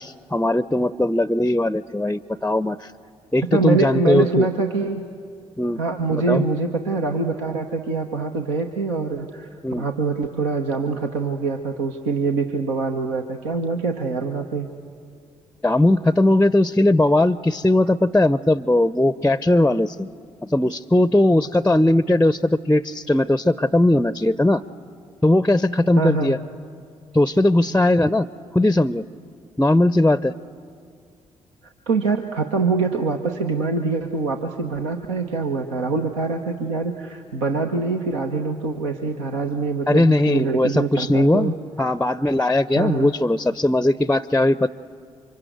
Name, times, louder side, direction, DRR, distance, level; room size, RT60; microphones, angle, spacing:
voice 1, 0.0-2.9 3.3-4.5 5.6-5.8 6.1-6.4 9.6-9.8 15.6-20.1 20.4-24.6 25.2-26.4 27.1-28.3 28.5-29.0 29.6-30.3 39.9-44.7, left 1 dB, 10° left, 16 dB, 0.6 m, -19 dB
voice 2, 3.5-5.0 5.8-9.5 9.8-14.7 26.0-26.4 31.6-41.5 42.7-43.1, right 4 dB, 80° right, 2 dB, 1.1 m, -24 dB
29.5 x 25.0 x 8.0 m, 2.4 s
figure-of-eight pair, 40°, 16 cm